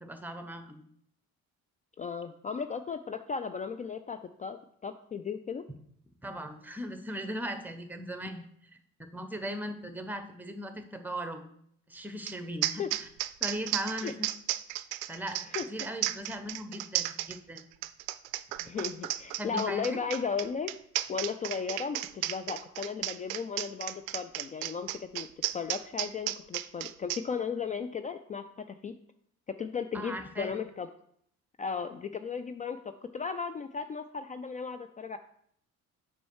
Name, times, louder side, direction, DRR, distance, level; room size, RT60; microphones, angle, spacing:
voice 1, 0.0-0.8 6.2-8.4 9.1-11.5 11.9-13.1 13.4-14.3 15.1-15.4 15.7-17.7 19.4-20.0 29.9-30.6, equal, 5° right, 8 dB, 1.0 m, -38 dB
voice 2, 2.0-5.6 12.8-12.9 14.0-14.1 15.5-15.7 18.6-20.7 21.1-25.3 25.5-28.9 29.6-30.9 31.6-32.8 33.1-35.2, left 6 dB, 20° left, 10 dB, 0.3 m, -35 dB
sound 1, 12.3-12.4 12.6-27.2, right 15 dB, 70° right, 0.5 m, -33 dB
6.9 x 5.5 x 4.6 m, 0.66 s
figure-of-eight pair, 50°, 43 cm